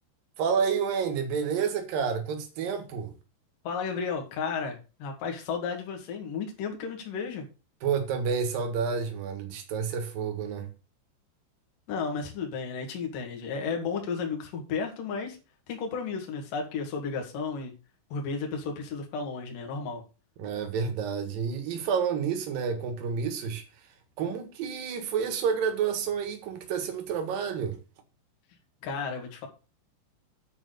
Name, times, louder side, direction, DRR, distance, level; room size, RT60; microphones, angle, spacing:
voice 1, 0.4-3.1 7.8-10.7 20.4-27.8, right 6 dB, 60° right, 2.9 m, -29 dB
voice 2, 3.6-7.4 11.9-15.4 15.7-17.7 18.1-20.0 28.8-29.5, left 5 dB, 55° left, 3.3 m, -33 dB
9.2 x 5.2 x 6.7 m
omnidirectional pair, 5.5 m